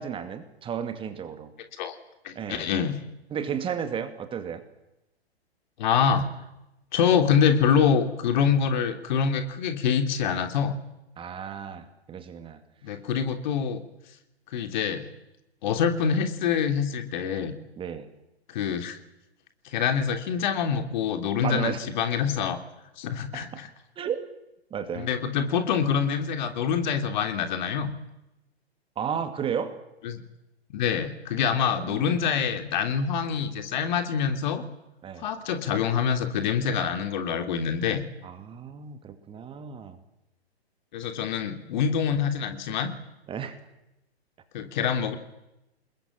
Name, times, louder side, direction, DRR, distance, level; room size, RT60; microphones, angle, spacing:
voice 1, 0.0-1.5 2.3-2.7 3.3-4.6 11.2-12.6 17.8-18.1 21.4-21.8 23.3-23.6 24.0-24.3 24.7-25.1 29.0-29.7 31.5-32.2 35.0-35.3 38.2-40.0 43.3-43.6, right 7 dB, 15° right, 9 dB, 2.2 m, -33 dB
voice 2, 2.2-3.0 5.8-6.3 6.9-10.8 12.8-13.8 14.5-15.0 15.6-17.5 18.5-19.0 19.7-22.6 23.0-23.7 24.9-27.9 30.0-30.2 30.7-34.6 35.2-38.0 40.9-42.9 44.5-45.2, left 7 dB, 45° left, 7 dB, 3.3 m, -25 dB
28.0 x 21.0 x 8.8 m, 0.90 s
figure-of-eight pair, 120°, 32 cm